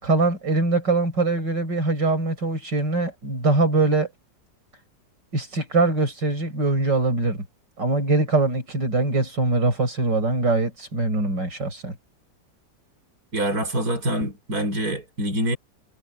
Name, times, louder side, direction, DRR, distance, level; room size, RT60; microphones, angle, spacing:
voice 1, 0.0-4.1 5.3-7.4 7.8-12.0, right 2 dB, 75° right, 7.1 m, -22 dB
voice 2, 13.3-15.6, equal, 55° right, 7.2 m, -25 dB
omnidirectional pair, 1.9 m